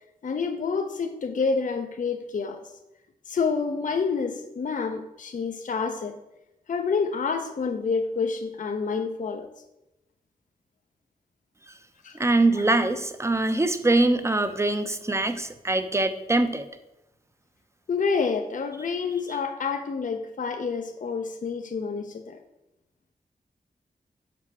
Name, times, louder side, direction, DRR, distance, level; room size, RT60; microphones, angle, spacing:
voice 1, 0.2-2.6 3.3-6.2 6.7-9.5 12.0-12.2 12.6-12.7 17.9-22.4, left 5 dB, 55° left, 6 dB, 0.6 m, -28 dB
voice 2, 12.2-16.7, right 2 dB, 15° right, 10 dB, 0.6 m, -23 dB
6.0 x 4.3 x 6.0 m, 0.90 s
cardioid pair, 70°, 16 cm